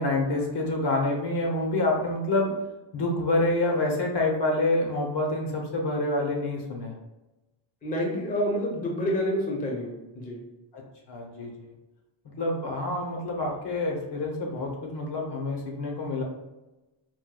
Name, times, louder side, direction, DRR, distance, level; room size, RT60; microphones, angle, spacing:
voice 1, 0.0-2.5 2.9-6.9 10.7-10.8 11.1-11.5 12.4-16.2, left 2 dB, 55° left, 1 dB, 0.8 m, -27 dB
voice 2, 7.8-10.4, equal, 15° left, -1 dB, 0.6 m, -28 dB
4.5 x 2.2 x 2.2 m, 1.0 s
wide cardioid pair, 130°, 49 cm